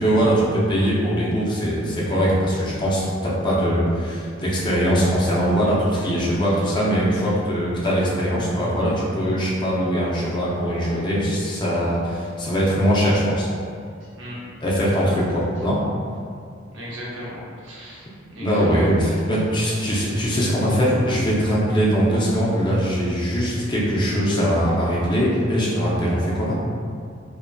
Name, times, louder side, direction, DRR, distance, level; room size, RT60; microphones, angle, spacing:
voice 1, 0.0-13.5 14.6-15.8 18.4-26.5, equal, 25° left, -6 dB, 0.5 m, -21 dB
voice 2, 16.7-18.7, equal, 65° right, -7 dB, 0.7 m, -37 dB
2.6 x 2.5 x 2.2 m, 2.2 s
head